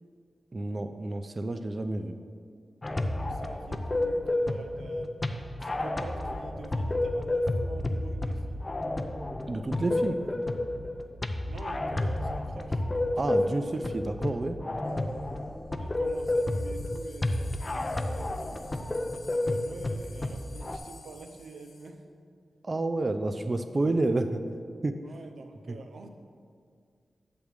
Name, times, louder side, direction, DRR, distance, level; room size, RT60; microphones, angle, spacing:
voice 1, 0.5-2.2 9.5-10.2 13.2-14.6 22.6-24.4 24.8-25.0 25.7-25.8, right 2 dB, 35° right, 8 dB, 0.3 m, -29 dB
sound 1, 2.8-20.8, left 1 dB, 25° left, 0.4 m, -31 dB
voice 2, 3.2-5.1 5.6-8.6 10.0-10.1 11.5-13.8 14.2-14.4 15.8-22.0 25.0-26.1, right 3 dB, 90° right, 5 dB, 0.6 m, -47 dB
sound 2, 14.9-15.2 16.1-21.9, left 4 dB, 65° left, 0.8 m, -53 dB
8.7 x 3.5 x 6.5 m, 2.2 s
wide cardioid pair, 85°, 0 cm